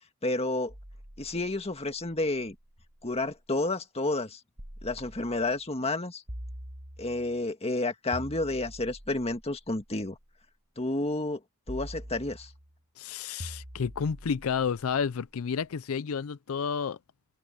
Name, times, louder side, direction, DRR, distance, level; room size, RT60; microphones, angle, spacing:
voice 1, 0.2-0.7 1.2-2.6 3.0-4.4 4.8-6.2 7.0-10.2 10.8-11.4 11.7-12.5, left 2 dB, 30° left, 1.8 m, -30 dB
sound 1, 0.7-3.5 4.6-5.6 6.3-7.4 8.1-10.4 11.7-12.8 13.4-15.6, equal, 45° right, 4.9 m, -45 dB
voice 2, 13.0-17.0, left 6 dB, 75° left, 0.5 m, -31 dB
head